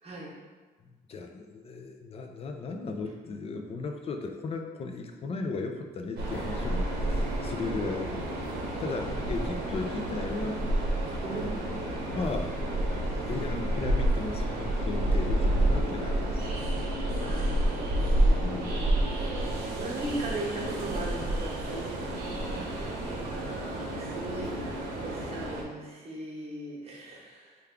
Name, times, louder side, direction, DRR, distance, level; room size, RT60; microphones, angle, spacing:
voice 1, 0.0-0.4 7.9-8.2 8.9-9.0 11.2-11.6 17.2-27.6, right 2 dB, 40° right, -4 dB, 0.9 m, -39 dB
voice 2, 0.9-8.2 8.8-10.6 12.1-12.6 13.2-16.5 18.4-18.8, left 3 dB, 40° left, 4 dB, 0.4 m, -36 dB
Train, 6.2-25.6, right 1 dB, 85° right, 0.7 m, -29 dB
3.3 x 2.3 x 3.6 m, 1.3 s
cardioid pair, 115°, 16 cm